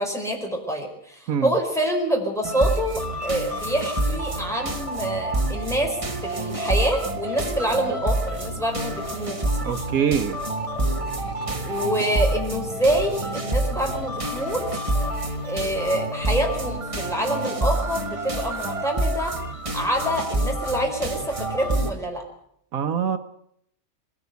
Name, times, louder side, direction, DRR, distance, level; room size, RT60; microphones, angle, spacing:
voice 1, 0.0-9.4 11.6-14.6 15.4-19.3 19.7-22.2, right 1 dB, ahead, 0 dB, 4.9 m, -26 dB
sound 1, 2.4-21.9, right 1 dB, 25° right, 1.6 m, -27 dB
voice 2, 9.6-10.4 22.7-23.2, right 7 dB, 75° right, 8 dB, 1.4 m, -24 dB
21.0 x 17.0 x 8.1 m, 0.71 s
omnidirectional pair, 1.5 m